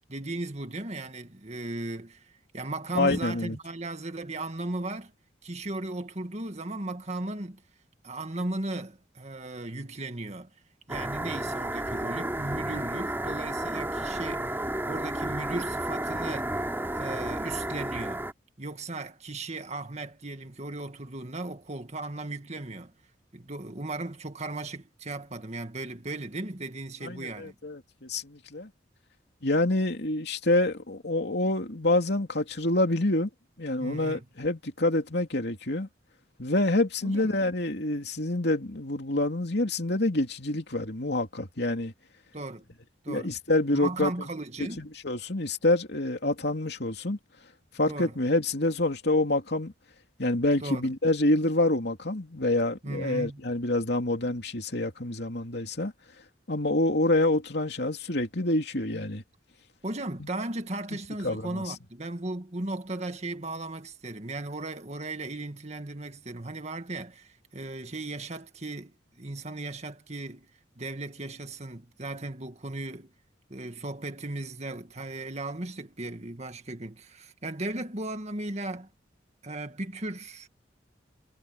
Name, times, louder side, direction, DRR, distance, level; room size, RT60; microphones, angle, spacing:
voice 1, 0.1-5.1 5.4-7.6 8.0-10.5 10.9-16.6 16.9-18.3 18.6-22.9 23.3-27.6 33.8-34.2 37.0-37.4 42.3-42.6 43.0-43.3 43.7-44.9 47.9-48.2 50.6-50.9 52.8-53.4 59.8-70.5 70.8-73.1 73.5-78.9 79.4-80.5, right 2 dB, 35° right, 2.0 m, -36 dB
voice 2, 2.9-3.6 27.0-28.7 29.4-33.3 33.6-35.9 36.4-41.9 43.1-44.1 44.8-47.2 47.7-49.7 50.2-55.9 56.5-59.2 60.2-60.3 60.9-61.0 61.2-61.6, left 2 dB, 60° left, 3.0 m, -27 dB
sound 1, 10.9-18.3, right 1 dB, 10° right, 3.1 m, -32 dB
head